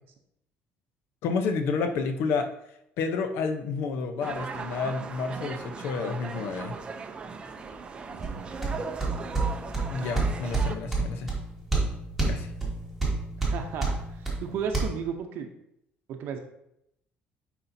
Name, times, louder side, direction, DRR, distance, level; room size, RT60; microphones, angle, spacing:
voice 1, 1.2-2.5 3.0-6.8 9.9-11.3 12.3-12.5, left 4 dB, 70° left, 7 dB, 0.7 m, -30 dB
sound 1, 4.2-10.8, right 4 dB, 25° right, 0.5 m, -38 dB
voice 2, 8.1-8.8 13.4-15.5 16.1-16.4, right 6 dB, 60° right, 5 dB, 0.7 m, -35 dB
sound 2, 8.2-14.8, right 3 dB, ahead, 1.5 m, -29 dB
9.8 x 4.2 x 2.7 m, 0.78 s
cardioid pair, 160°, 4 cm